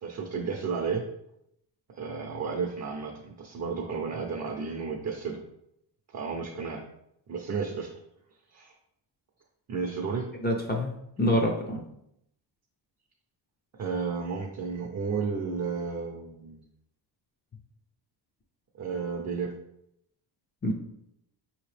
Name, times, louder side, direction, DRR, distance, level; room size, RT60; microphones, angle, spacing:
voice 1, 0.0-1.0 2.0-5.4 6.1-6.8 7.3-7.9 8.5-8.7 9.7-10.3 13.8-16.6 18.8-19.5, right 5 dB, 40° right, 1 dB, 0.5 m, -32 dB
voice 2, 10.4-10.9 11.2-11.8 20.6-20.7, left 1 dB, 25° left, 1 dB, 0.4 m, -26 dB
5.4 x 2.9 x 3.2 m, 0.78 s
wide cardioid pair, 160°, 43 cm